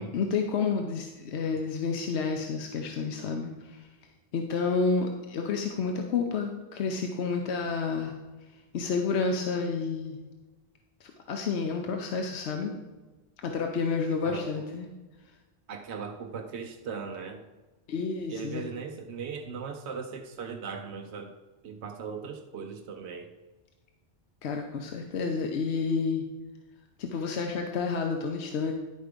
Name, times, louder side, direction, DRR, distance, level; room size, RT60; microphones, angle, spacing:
voice 1, 0.0-3.9 4.3-8.1 8.7-10.2 11.0-12.7 13.4-14.9 17.9-18.7 24.4-26.2 27.0-28.7, left 5 dB, 80° left, 3 dB, 1.0 m, -30 dB
voice 2, 15.7-17.4 18.3-21.3 21.6-23.3, right 5 dB, 85° right, 4 dB, 1.0 m, -38 dB
10.5 x 4.7 x 5.1 m, 1.2 s
omnidirectional pair, 1.1 m